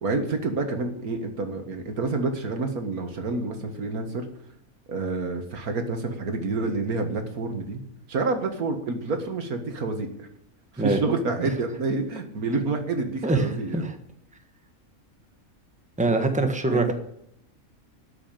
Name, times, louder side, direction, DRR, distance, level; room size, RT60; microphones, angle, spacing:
voice 1, 0.0-4.3 4.9-7.8 8.1-10.3 10.7-13.8 16.7-16.8, right 3 dB, 90° right, 6 dB, 2.1 m, -28 dB
voice 2, 13.2-13.9 16.0-16.9, right 2 dB, 5° right, 6 dB, 1.3 m, -24 dB
12.5 x 6.2 x 9.0 m, 0.75 s
omnidirectional pair, 1.5 m